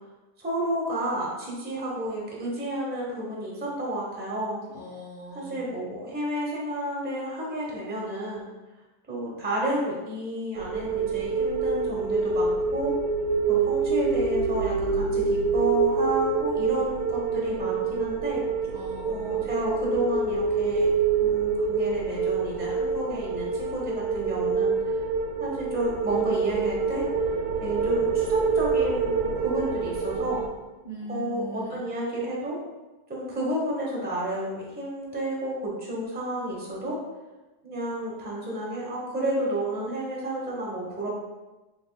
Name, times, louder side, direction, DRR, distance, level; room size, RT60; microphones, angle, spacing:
voice 1, 0.4-4.6 5.3-8.5 9.1-12.9 13.5-18.4 19.1-20.9 21.2-25.0 25.4-27.3 27.6-30.4 31.1-32.6 33.1-37.0 37.6-41.1, right 1 dB, 10° right, -4 dB, 0.6 m, -31 dB
voice 2, 4.7-5.7 18.7-19.5 30.8-31.8, equal, 55° left, -6 dB, 0.5 m, -40 dB
sound 1, 10.5-30.5, right 5 dB, 75° right, 1.0 m, -26 dB
5.1 x 3.3 x 2.2 m, 1.1 s
omnidirectional pair, 1.7 m